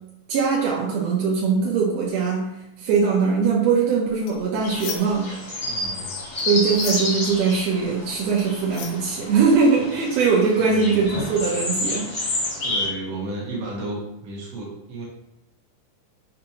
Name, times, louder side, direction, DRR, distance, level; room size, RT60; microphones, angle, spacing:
voice 1, 0.3-2.5 2.8-5.4 6.5-12.1, right 5 dB, 80° right, -3 dB, 1.5 m, -21 dB
sound 1, 4.1-5.3 5.6-9.6, left 7 dB, 80° left, 1.8 m, -38 dB
sound 2, 4.6-12.9, left 2 dB, 55° left, 1.1 m, -30 dB
voice 2, 5.6-6.2 10.5-11.0 12.6-15.0, right 2 dB, 60° right, -4 dB, 1.8 m, -33 dB
6.4 x 2.6 x 2.8 m, 0.87 s
omnidirectional pair, 3.8 m